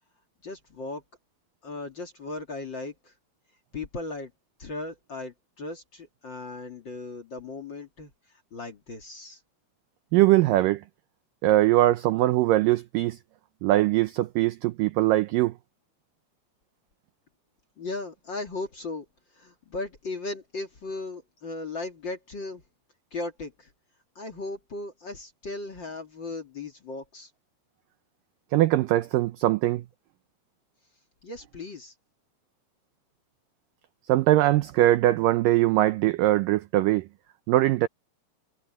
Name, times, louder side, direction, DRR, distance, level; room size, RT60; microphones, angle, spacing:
voice 1, 0.4-1.0 1.6-3.1 3.7-4.3 4.6-8.1 8.5-9.4 17.8-19.0 19.3-22.6 23.1-23.7 24.2-27.3 31.2-31.9, left 3 dB, 35° left, 2.3 m, -37 dB
voice 2, 10.1-10.8 11.4-13.2 13.6-15.5 28.5-29.8 34.1-37.1 37.5-37.9, right 15 dB, 85° right, 1.9 m, -21 dB
omnidirectional pair, 4.7 m